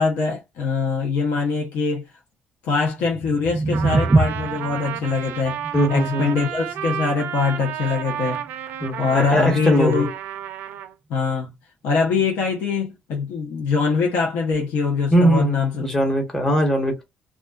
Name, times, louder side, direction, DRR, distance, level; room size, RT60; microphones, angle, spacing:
voice 1, 0.0-2.1 2.6-5.6 5.9-8.4 9.0-10.1 11.1-11.5 11.8-15.9, left 4 dB, 90° left, 0.7 m, -23 dB
sound 1, 2.9-9.1, right 3 dB, 20° right, 0.4 m, -26 dB
Trumpet, 3.7-10.9, right 10 dB, 85° right, 0.4 m, -32 dB
voice 2, 5.7-6.4 8.8-10.1 15.1-17.0, right 1 dB, 15° left, 1.1 m, -20 dB
2.3 x 2.3 x 2.3 m
cardioid pair, 130°, 3 cm